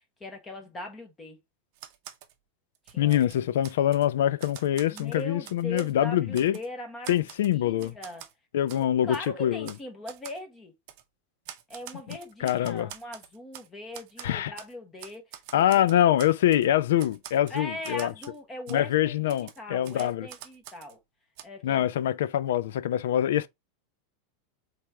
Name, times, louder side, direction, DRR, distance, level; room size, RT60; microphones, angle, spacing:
voice 1, 0.2-1.4 2.9-3.5 4.9-8.3 8.7-10.7 11.7-15.8 17.5-21.0 21.4-22.1, left 1 dB, 15° left, 1.0 m, -40 dB
Typewriter, 1.8-2.3 2.8-4.1 4.4-5.9 6.3-6.7 7.0-8.3 8.7-8.8 9.1-9.3 9.6-9.8 10.1-10.4 10.9-11.0 11.5-13.7 13.9-14.7 15.0-16.7 17.0-18.4 18.7-18.8 19.3-21.0 21.4-21.5, right 12 dB, 40° right, 0.7 m, -46 dB
voice 2, 3.0-6.6 7.1-8.0 8.5-9.7 12.4-12.9 14.2-14.5 15.5-18.1 18.7-20.3 21.6-23.5, left 11 dB, 80° left, 0.4 m, -24 dB
4.3 x 3.4 x 3.4 m
supercardioid pair, 175°, 0 cm